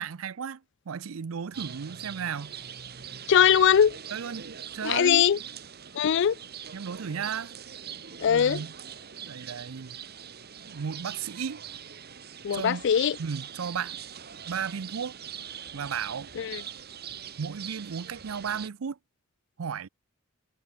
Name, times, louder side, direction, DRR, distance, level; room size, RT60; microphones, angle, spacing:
voice 1, 0.0-2.6 4.1-5.3 6.7-7.5 8.2-8.7 9.3-10.0 10.7-11.6 12.5-12.8 13.2-14.0 14.5-15.2 15.7-16.3 17.4-19.0 19.6-19.9, right 6 dB, 80° right, 0.5 m, -34 dB
sound 1, 1.5-18.7, right 8 dB, 50° right, 1.6 m, -42 dB
voice 2, 3.3-4.0 4.8-5.4 5.9-6.4 8.2-8.6 12.4-13.2 16.4-16.6, left 8 dB, 60° left, 0.4 m, -21 dB
head